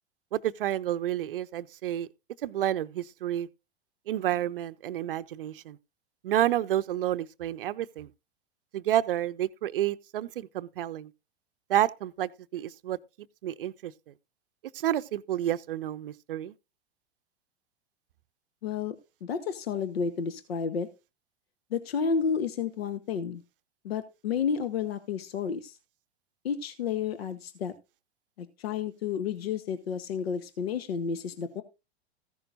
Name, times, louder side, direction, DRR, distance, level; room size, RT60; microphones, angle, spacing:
voice 1, 0.3-2.1 2.4-3.5 4.1-5.8 6.2-8.1 8.7-11.1 11.7-13.0 13.4-13.9 14.7-16.5, right 12 dB, 55° right, 0.7 m, -30 dB
voice 2, 18.6-18.9 19.2-20.9 21.7-23.4 23.8-25.8 26.4-27.7 28.4-31.6, left 6 dB, 60° left, 1.1 m, -31 dB
15.0 x 11.0 x 2.6 m
figure-of-eight pair, 95°, 33 cm